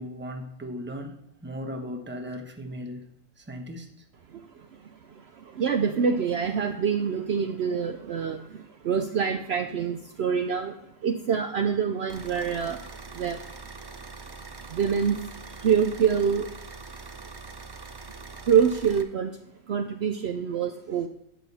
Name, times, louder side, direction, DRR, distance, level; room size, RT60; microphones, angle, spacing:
voice 1, 0.0-3.1 3.4-3.9, equal, 10° right, 4 dB, 0.9 m, -37 dB
voice 2, 5.6-8.4 8.8-10.7 11.0-12.8 13.2-13.4 14.7-15.2 15.6-16.5 18.5-19.3 19.7-21.1, right 7 dB, 60° right, 7 dB, 0.8 m, -25 dB
sound 1, 12.1-19.0, right 4 dB, 35° right, 0.4 m, -43 dB
11.0 x 7.7 x 4.1 m, 0.81 s
omnidirectional pair, 1.4 m